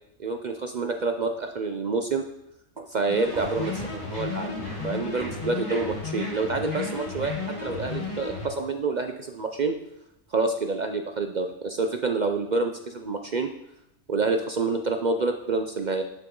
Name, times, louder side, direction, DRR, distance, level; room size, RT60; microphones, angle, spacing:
voice 1, 0.2-2.2 2.8-4.5 4.8-7.3 7.6-9.7 10.3-13.5 14.1-16.0, right 3 dB, 55° right, 5 dB, 0.5 m, -27 dB
sound 1, 3.1-8.5, left 4 dB, 25° left, 1.5 m, -34 dB
sound 2, 3.2-8.3, right 1 dB, 30° right, 2.3 m, -43 dB
sound 3, 4.5-6.1 7.6-8.9, left 4 dB, 85° left, 2.5 m, -46 dB
11.5 x 6.8 x 3.7 m, 0.84 s
omnidirectional pair, 1.4 m